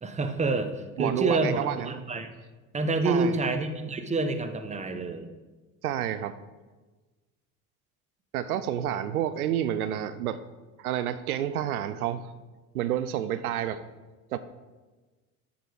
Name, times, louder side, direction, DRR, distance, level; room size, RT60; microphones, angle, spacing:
voice 1, 0.0-2.3 2.7-5.3, right 3 dB, 15° right, 8 dB, 0.9 m, -28 dB
voice 2, 1.0-1.9 3.0-3.4 5.8-6.4 8.3-10.4 10.8-12.2 12.7-13.8 14.3-14.4, right 11 dB, 90° right, 13 dB, 0.5 m, -29 dB
8.0 x 6.3 x 4.7 m, 1.2 s
hypercardioid pair, 70°, 42 cm